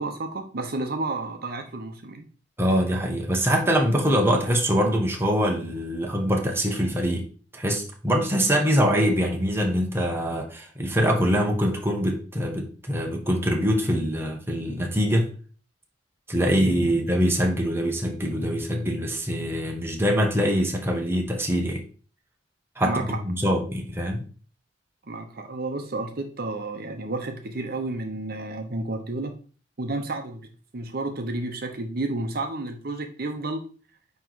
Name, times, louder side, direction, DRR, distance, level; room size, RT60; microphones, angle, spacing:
voice 1, 0.0-2.3 22.8-23.2 25.1-29.3 29.8-33.6, right 2 dB, 55° right, 5 dB, 0.8 m, -31 dB
voice 2, 2.6-7.3 7.5-15.3 16.3-21.8 22.8-24.2, equal, 15° right, 1 dB, 1.1 m, -24 dB
9.2 x 3.1 x 3.9 m, 0.39 s
head